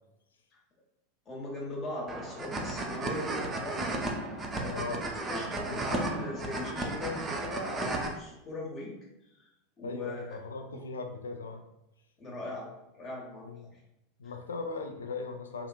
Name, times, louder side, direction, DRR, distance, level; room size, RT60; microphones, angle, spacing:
voice 1, 1.3-3.8 4.1-4.2 4.5-4.9 5.3-8.9 9.2-9.5 9.8-10.4 12.2-12.7 12.9-13.8, left 2 dB, 35° left, -3 dB, 1.0 m, -39 dB
sound 1, 2.1-8.1, right 2 dB, 20° right, 0.4 m, -34 dB
sound 2, 2.5-7.6, equal, 5° right, 1.0 m, -51 dB
voice 2, 4.7-5.1 5.7-6.0 9.8-11.6 13.4-13.7 14.2-15.7, left 4 dB, 75° left, 5 dB, 0.3 m, -39 dB
2.8 x 2.5 x 2.2 m, 0.89 s
figure-of-eight pair, 85°, 0 cm